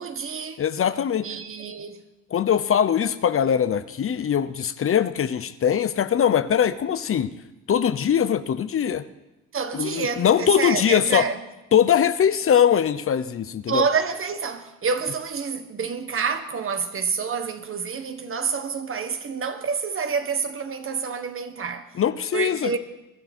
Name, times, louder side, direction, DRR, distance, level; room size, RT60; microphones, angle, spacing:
voice 1, 0.0-0.6 1.2-2.0 9.5-11.5 13.7-22.0 22.3-22.8, right 5 dB, 45° right, 1.4 m, -28 dB
voice 2, 0.6-1.3 2.3-7.3 7.7-9.0 9.7-11.3 11.7-13.8 22.0-22.8, left 9 dB, 45° left, 0.8 m, -21 dB
22.5 x 11.5 x 4.5 m
cardioid pair, 90°, 30 cm